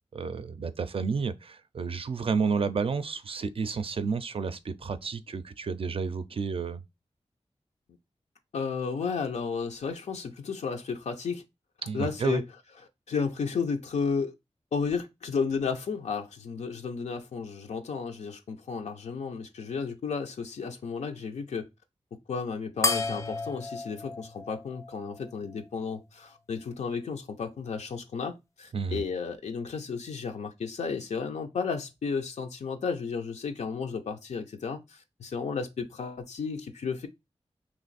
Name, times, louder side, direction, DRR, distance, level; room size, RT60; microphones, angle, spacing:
voice 1, 0.1-6.8 11.8-12.4 28.7-29.0, right 5 dB, 55° right, 0.4 m, -31 dB
voice 2, 8.5-11.4 11.9-12.4 13.1-14.3 14.7-21.7 22.3-37.1, left 5 dB, 90° left, 0.4 m, -33 dB
sound 1, 22.8-25.6, left 3 dB, 25° left, 0.4 m, -33 dB
3.0 x 2.5 x 3.9 m
wide cardioid pair, 65°, 11 cm